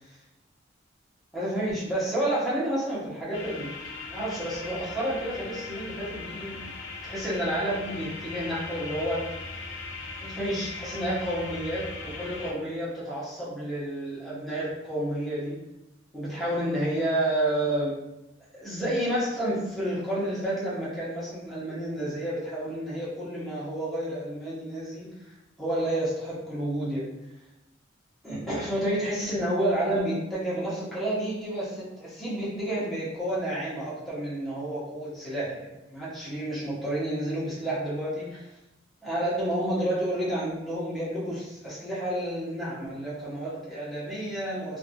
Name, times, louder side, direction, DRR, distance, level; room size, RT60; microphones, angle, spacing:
voice 1, 1.3-3.8 4.1-6.7 7.0-9.4 10.2-15.6 16.1-18.0 18.5-25.1 25.6-27.1 28.2-38.5 39.0-44.8, right 1 dB, ahead, -10 dB, 0.9 m, -30 dB
sound 1, 3.3-12.5, left 3 dB, 75° left, 0.4 m, -39 dB
2.5 x 2.5 x 2.5 m, 0.95 s
head